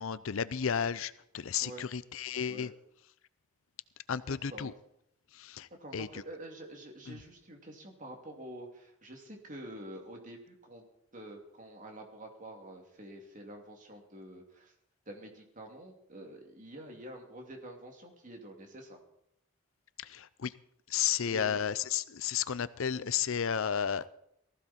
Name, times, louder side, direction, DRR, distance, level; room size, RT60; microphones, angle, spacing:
voice 1, 0.0-2.7 4.1-4.7 5.3-6.2 7.1-7.2 20.0-20.5 20.9-24.1, left 8 dB, 65° left, 16 dB, 0.5 m, -33 dB
voice 2, 4.3-4.7 5.8-10.8 11.1-14.7 15.1-19.0 21.2-21.6, right 1 dB, 35° right, 2 dB, 2.7 m, -47 dB
19.0 x 15.0 x 4.3 m, 0.75 s
head